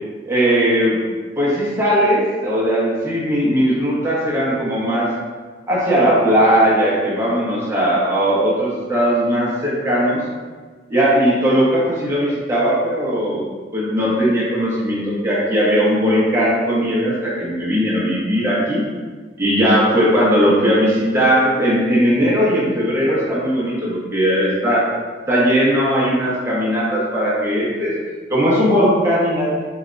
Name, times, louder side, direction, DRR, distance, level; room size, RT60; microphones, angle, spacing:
voice 1, 0.3-1.0 1.4-5.1 5.7-10.2 10.9-18.9 19.4-24.8 25.3-27.9 28.3-29.6, equal, 15° right, -7 dB, 1.1 m, -18 dB
4.4 x 3.3 x 2.6 m, 1.5 s
head